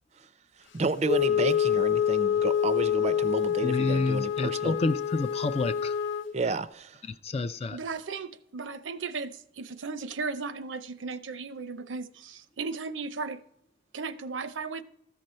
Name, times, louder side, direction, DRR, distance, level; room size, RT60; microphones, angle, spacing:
voice 1, 0.7-4.8 6.3-7.0, right 3 dB, 35° right, 0.4 m, -31 dB
Wind instrument woodwind instrument, 1.0-6.3, left 8 dB, 80° left, 0.6 m, -27 dB
voice 2, 3.6-6.0 7.2-7.8, left 3 dB, 30° left, 0.3 m, -29 dB
voice 3, 7.7-13.4 13.9-14.8, right 4 dB, 85° right, 0.6 m, -36 dB
14.0 x 6.5 x 4.3 m
head